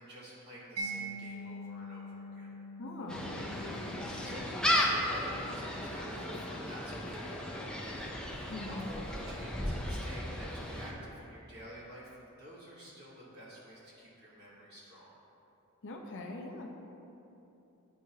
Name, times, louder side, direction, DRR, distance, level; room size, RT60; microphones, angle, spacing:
voice 1, 0.0-2.5 3.6-15.1, equal, 50° right, -8 dB, 1.3 m, -50 dB
Mallet percussion, 0.8-7.5, right 1 dB, 75° right, 0.6 m, -45 dB
voice 2, 2.8-3.3 8.5-8.9 15.8-16.7, left 2 dB, 55° left, 1 dB, 0.6 m, -42 dB
Gull seagull, 3.1-10.9, left 1 dB, 5° left, 0.5 m, -35 dB
9.2 x 4.6 x 2.8 m, 2.9 s
head